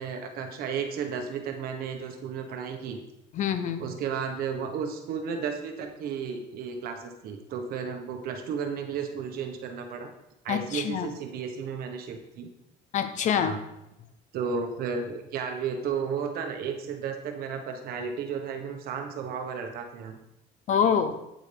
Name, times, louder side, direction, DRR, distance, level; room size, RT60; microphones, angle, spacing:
voice 1, 0.0-3.0 3.8-10.1 10.4-12.5 13.3-13.6 14.3-20.2, right 6 dB, 65° right, 4 dB, 1.4 m, -33 dB
voice 2, 3.3-3.9 10.5-11.1 12.9-13.5 20.7-21.2, left 8 dB, 50° left, 10 dB, 0.8 m, -26 dB
9.0 x 8.2 x 3.5 m, 0.86 s
cardioid pair, 130°, 17 cm